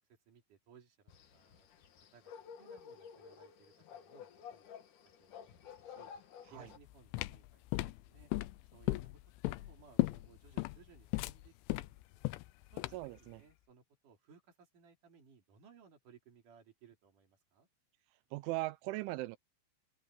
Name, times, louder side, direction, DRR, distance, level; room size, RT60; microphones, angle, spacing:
voice 1, 0.3-1.7 2.0-2.3 2.6-4.8 5.2-6.1 6.5-8.3 8.7-9.2 9.5-12.0 12.7-12.8 13.2-17.7, right 6 dB, 45° right, 4.7 m, -63 dB
sound 1, 1.1-6.8, left 7 dB, 55° left, 2.5 m, -53 dB
sound 2, 6.7-13.2, left 20 dB, 85° left, 3.1 m, -37 dB
voice 2, 12.9-13.4 18.3-19.4, right 20 dB, 90° right, 3.1 m, -39 dB
omnidirectional pair, 5.4 m